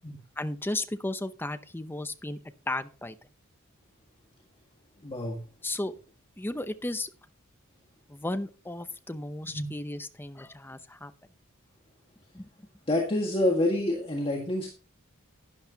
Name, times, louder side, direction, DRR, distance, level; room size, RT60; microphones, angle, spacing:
voice 1, 0.4-2.4 2.7-3.2 5.6-5.9 6.4-7.1 8.1-11.1 12.3-12.5, left 1 dB, 10° left, 10 dB, 0.7 m, -34 dB
voice 2, 5.0-5.4 9.5-9.7 12.9-14.7, left 1 dB, 25° left, 0 dB, 1.7 m, -27 dB
11.5 x 10.0 x 2.9 m, 0.35 s
head